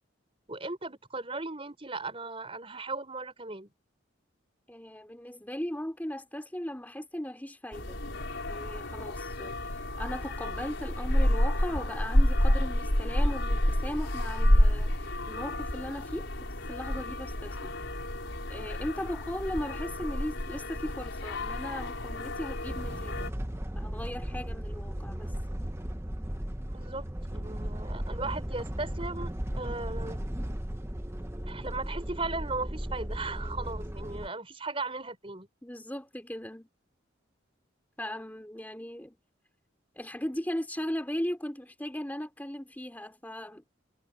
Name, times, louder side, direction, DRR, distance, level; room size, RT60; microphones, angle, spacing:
voice 1, 0.5-3.7 26.7-30.2 31.5-35.5, right 3 dB, 30° right, 4.8 m, -37 dB
voice 2, 4.7-8.0 8.5-17.8 18.5-23.3 23.7-25.3 35.6-36.7 38.0-39.2 39.9-43.6, equal, 10° left, 3.0 m, -38 dB
sound 1, 7.7-23.3, left 1 dB, 75° left, 5.0 m, -29 dB
sound 2, 22.7-34.3, equal, 15° right, 0.9 m, -36 dB
head